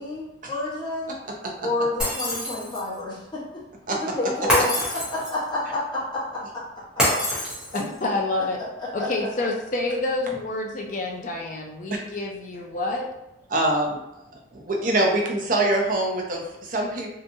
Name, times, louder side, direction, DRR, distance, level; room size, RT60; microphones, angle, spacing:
voice 1, 0.0-1.2 1.6-3.4 3.9-4.7 5.1-6.4 9.0-9.1, left 2 dB, 25° left, -9 dB, 0.9 m, -29 dB
Shatter, 2.0-2.9 4.5-5.5 7.0-8.0, left 1 dB, 5° right, 0.8 m, -25 dB
voice 2, 7.7-8.6 8.9-13.1, left 2 dB, 40° left, 0 dB, 0.4 m, -28 dB
voice 3, 13.5-14.0 14.5-17.1, right 1 dB, 45° right, 0 dB, 0.5 m, -24 dB
2.8 x 2.2 x 2.6 m, 0.91 s
head